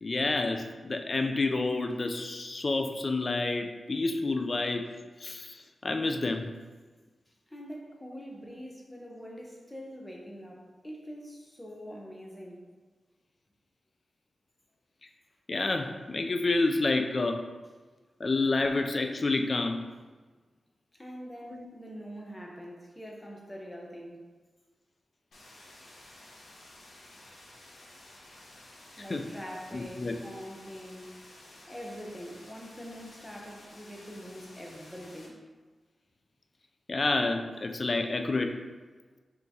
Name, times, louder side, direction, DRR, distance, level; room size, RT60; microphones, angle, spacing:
voice 1, 0.0-4.9 5.2-6.5 15.5-17.4 18.2-19.9 21.5-21.7 29.1-29.3 29.7-30.1 36.9-38.6, left 3 dB, 40° left, 5 dB, 0.3 m, -29 dB
voice 2, 7.5-12.6 20.9-24.3 28.9-31.2 31.7-35.4, equal, 10° left, -1 dB, 0.7 m, -44 dB
sound 1, 25.3-35.3, left 1 dB, 80° left, 1.0 m, -53 dB
5.6 x 2.9 x 2.7 m, 1.3 s
wide cardioid pair, 115°, 0 cm